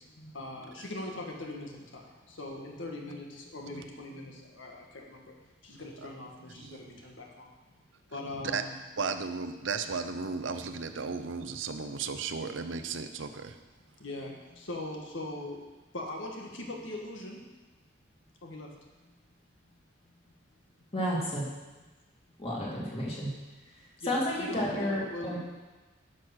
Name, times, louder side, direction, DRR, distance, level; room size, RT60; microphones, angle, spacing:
voice 1, 0.0-5.3 5.6-7.5 8.1-8.8 11.1-11.2 14.0-15.6 15.9-17.4 18.4-18.7 19.0-19.1 19.7-19.8 24.0-25.4, left 1 dB, 90° left, 0 dB, 1.8 m, -41 dB
voice 2, 6.6-7.0 8.4-8.6 9.0-13.6, right 5 dB, 85° right, 9 dB, 0.7 m, -35 dB
voice 3, 20.9-21.5 22.4-23.3 24.1-25.4, equal, 30° left, -5 dB, 2.8 m, -31 dB
10.5 x 6.1 x 6.4 m, 1.2 s
head